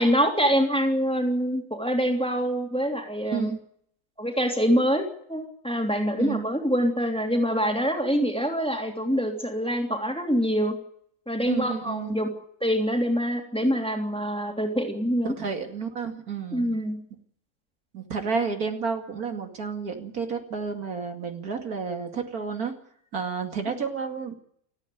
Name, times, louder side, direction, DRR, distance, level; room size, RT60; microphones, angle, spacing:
voice 1, 0.0-3.5 4.2-10.8 11.3-12.3 12.6-15.3 16.5-17.0, equal, 5° left, 2 dB, 3.1 m, -25 dB
voice 2, 3.2-3.6 6.2-6.4 11.4-12.1 15.4-16.7 17.9-22.7 23.1-24.3, right 5 dB, 75° right, 4 dB, 2.7 m, -31 dB
29.0 x 9.6 x 9.3 m, 0.67 s
omnidirectional pair, 1.6 m